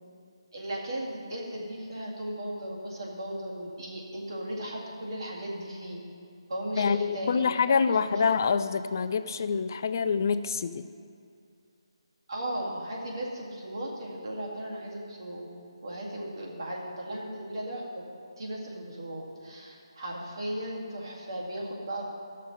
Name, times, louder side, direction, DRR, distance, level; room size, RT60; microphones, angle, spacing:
voice 1, 0.5-6.0 6.5-8.2 12.3-15.5 15.8-17.9 18.4-22.0, right 1 dB, 55° right, -4 dB, 2.1 m, -36 dB
voice 2, 6.8-10.8, left 5 dB, 40° left, 11 dB, 0.4 m, -26 dB
14.0 x 6.5 x 3.9 m, 2.4 s
figure-of-eight pair, 150°, 3 cm